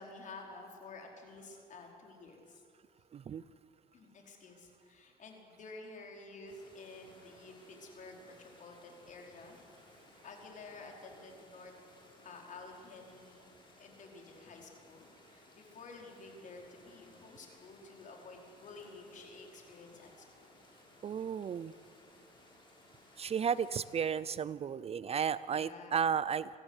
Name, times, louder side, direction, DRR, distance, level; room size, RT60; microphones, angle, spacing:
voice 1, 0.0-2.6 3.9-9.6 9.8-9.9 10.2-11.7 12.2-13.5 13.8-20.5 25.5-26.1, left 3 dB, 50° left, 1 dB, 4.8 m, -51 dB
voice 2, 3.1-3.4 21.0-21.7 23.2-26.5, right 7 dB, 35° right, 18 dB, 0.5 m, -33 dB
sound 1, 6.5-24.0, left 2 dB, 30° left, 6.6 m, -61 dB
26.0 x 15.0 x 8.3 m, 2.3 s
cardioid pair, 110°, 17 cm